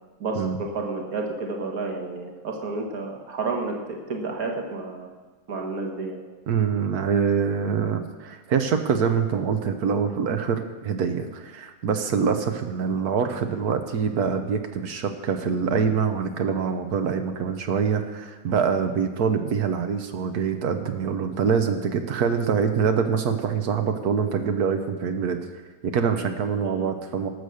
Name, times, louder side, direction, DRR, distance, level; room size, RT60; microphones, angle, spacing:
voice 1, 0.2-5.1 5.5-6.2 26.8-26.9, right 3 dB, 70° right, 2 dB, 2.1 m, -30 dB
voice 2, 6.5-25.4 25.8-27.3, right 6 dB, 90° right, 6 dB, 1.5 m, -25 dB
18.0 x 6.9 x 6.4 m, 1.3 s
omnidirectional pair, 1.6 m